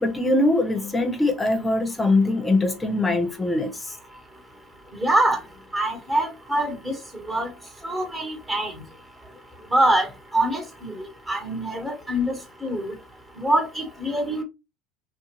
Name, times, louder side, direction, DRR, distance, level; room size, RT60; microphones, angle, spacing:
voice 1, 0.0-3.7 11.8-11.9, left 2 dB, 15° left, 0.8 m, -22 dB
voice 2, 4.9-5.4 5.7-7.0 7.3-7.5 7.8-8.7 9.7-10.1 10.3-12.3 12.6-12.9 13.4-14.4, right 1 dB, 20° right, 1.3 m, -24 dB
2.7 x 2.2 x 3.0 m
hypercardioid pair, 85°, 0 cm